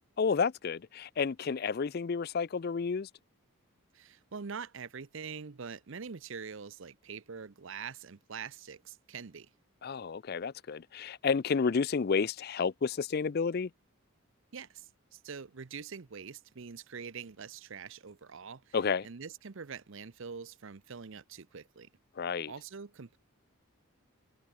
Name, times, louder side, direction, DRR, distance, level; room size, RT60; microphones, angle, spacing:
voice 1, 0.2-3.1 9.8-13.7 18.7-19.1 22.2-22.5, left 5 dB, 45° left, 0.4 m, -31 dB
voice 2, 3.9-9.5 14.5-18.8 19.0-21.9 22.5-23.2, right 6 dB, 60° right, 0.7 m, -44 dB
head